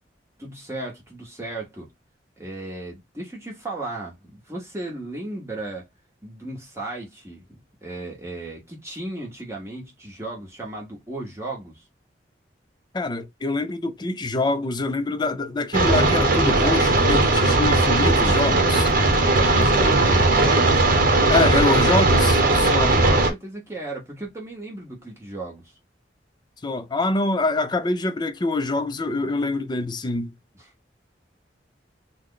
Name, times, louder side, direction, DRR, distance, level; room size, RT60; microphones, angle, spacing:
voice 1, 0.4-1.9 2.4-5.9 6.2-7.4 7.8-11.8 19.3-21.2 22.7-25.6, right 2 dB, 15° right, 1.0 m, -35 dB
voice 2, 12.9-18.9 21.3-22.9 26.6-30.3, left 2 dB, 25° left, 0.4 m, -25 dB
sound 1, 15.7-23.3, right 2 dB, 50° right, 1.1 m, -18 dB
3.1 x 2.2 x 3.7 m
head